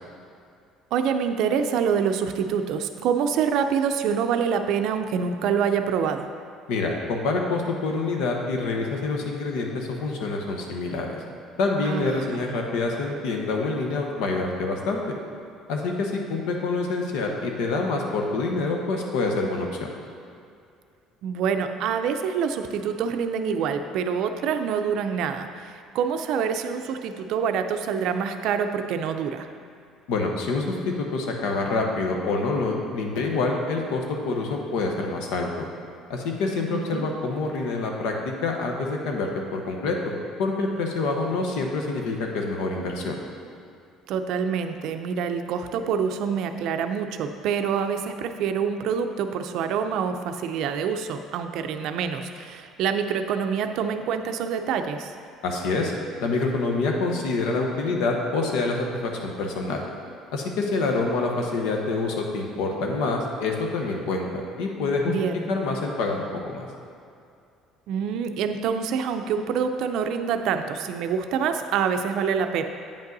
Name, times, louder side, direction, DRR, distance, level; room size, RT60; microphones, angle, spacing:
voice 1, 0.9-6.3 11.8-12.6 21.2-29.5 36.7-37.1 44.1-55.1 65.1-65.5 67.9-72.6, right 7 dB, 60° right, 7 dB, 0.4 m, -26 dB
voice 2, 6.7-11.2 11.6-15.1 15.7-19.9 30.1-35.7 36.1-40.0 40.4-43.2 55.4-55.9 56.2-59.9 60.3-65.1 65.5-66.7, left 3 dB, 85° left, 1 dB, 1.0 m, -26 dB
8.7 x 5.3 x 4.0 m, 2.5 s
cardioid pair, 160°, 0 cm